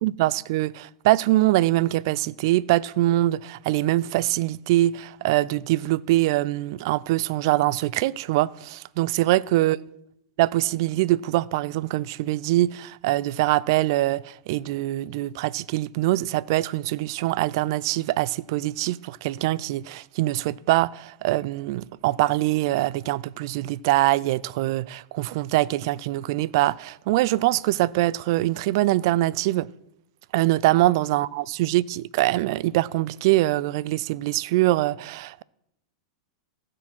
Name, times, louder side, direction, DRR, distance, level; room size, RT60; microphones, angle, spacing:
voice 1, 0.0-9.8 10.4-29.7 30.3-35.4, right 17 dB, 60° right, 0.3 m, -23 dB
15.5 x 6.3 x 4.4 m
hypercardioid pair, 110°, 3 cm